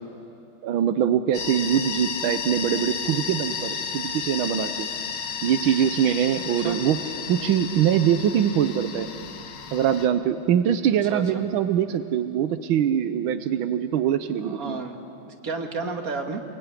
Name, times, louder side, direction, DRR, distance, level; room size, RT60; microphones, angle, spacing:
voice 1, 0.6-4.9 5.4-7.0 7.3-9.1 9.7-14.8, right 9 dB, 90° right, 10 dB, 1.7 m, -23 dB
sound 1, 1.3-10.1, left 6 dB, 65° left, 1.9 m, -32 dB
voice 2, 11.1-11.4 14.4-15.0 15.3-16.4, right 4 dB, 45° right, 3 dB, 2.5 m, -31 dB
27.0 x 22.0 x 9.9 m, 2.7 s
omnidirectional pair, 2.1 m